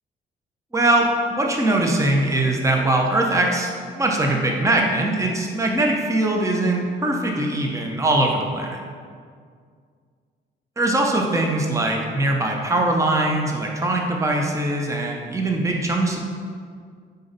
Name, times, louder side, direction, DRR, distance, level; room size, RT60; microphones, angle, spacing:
voice 1, 0.7-8.8 10.8-16.2, right 2 dB, 15° right, 1 dB, 0.9 m, -21 dB
8.4 x 4.1 x 5.2 m, 2.1 s
cardioid pair, 90°, 20 cm